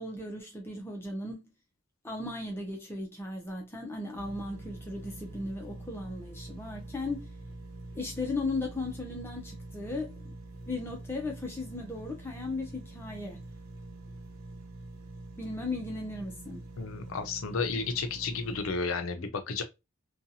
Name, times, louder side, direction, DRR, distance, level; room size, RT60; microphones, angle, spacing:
voice 1, 0.0-1.4 2.0-7.3 7.9-10.1 10.7-13.4 15.4-16.7, left 2 dB, 10° left, 0.5 m, -36 dB
sound 1, 4.1-18.8, right 2 dB, 80° right, 0.6 m, -45 dB
voice 2, 16.8-19.6, left 4 dB, 75° left, 0.6 m, -32 dB
2.7 x 2.3 x 2.7 m
head